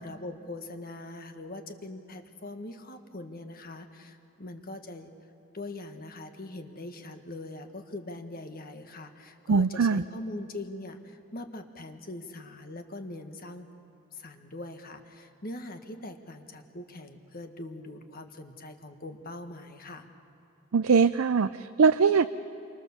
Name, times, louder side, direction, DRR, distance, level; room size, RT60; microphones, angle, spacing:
voice 1, 0.0-5.1 5.5-13.7 14.1-20.1, left 2 dB, 45° left, 6 dB, 1.6 m, -42 dB
voice 2, 9.5-10.0 20.7-22.3, right 5 dB, 80° right, 11 dB, 0.5 m, -22 dB
28.5 x 24.5 x 7.2 m, 2.8 s
head